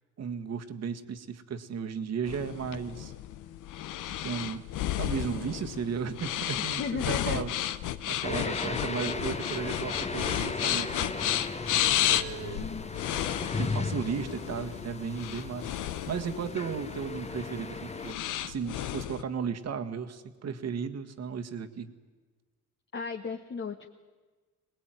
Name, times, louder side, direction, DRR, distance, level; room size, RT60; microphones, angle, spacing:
voice 1, 0.2-3.1 4.2-4.6 5.0-7.5 8.1-11.3 12.1-12.7 13.6-15.7 16.1-21.9, right 6 dB, 60° right, 8 dB, 1.8 m, -35 dB
sound 1, 2.3-19.2, left 12 dB, 85° left, 1.0 m, -33 dB
voice 2, 6.6-7.4 8.3-8.5 12.5-13.0 22.9-23.9, left 5 dB, 40° left, 4 dB, 1.4 m, -36 dB
sound 2, 8.2-18.1, left 3 dB, 20° left, 1.3 m, -36 dB
23.0 x 19.5 x 9.2 m, 1.3 s
cardioid pair, 90°, 30 cm